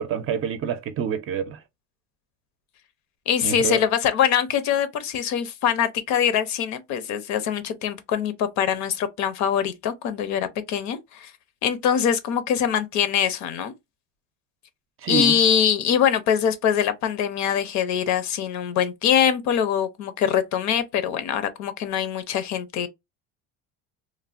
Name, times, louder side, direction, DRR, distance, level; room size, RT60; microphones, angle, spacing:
voice 1, 0.0-1.6 3.4-3.8 15.0-15.4, right 7 dB, 40° right, 0.5 m, -27 dB
voice 2, 3.3-11.3 11.6-13.7 15.1-22.9, left 8 dB, 60° left, 0.7 m, -23 dB
3.2 x 2.1 x 2.4 m
cardioid pair, 130°, 32 cm